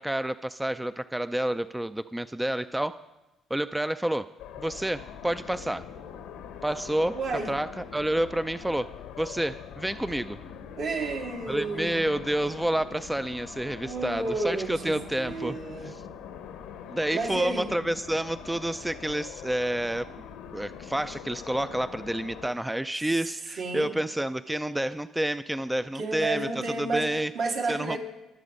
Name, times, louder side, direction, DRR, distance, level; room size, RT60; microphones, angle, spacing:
voice 1, 0.0-3.0 3.5-4.3 4.6-5.8 6.6-7.2 7.5-8.9 9.2-10.4 11.5-15.6 15.8-16.0 16.9-20.1 20.5-26.5 26.8-27.3 27.7-28.0, right 1 dB, 10° right, 12 dB, 0.4 m, -29 dB
sound 1, 4.4-22.5, left 8 dB, 90° left, 1.2 m, -43 dB
voice 2, 7.1-7.5 10.8-12.1 13.8-15.9 17.1-17.7 23.6-23.9 25.9-27.1 27.3-28.0, right 3 dB, 70° right, 0 dB, 2.7 m, -31 dB
22.5 x 7.7 x 5.3 m, 1.0 s
supercardioid pair, 65°, 0 cm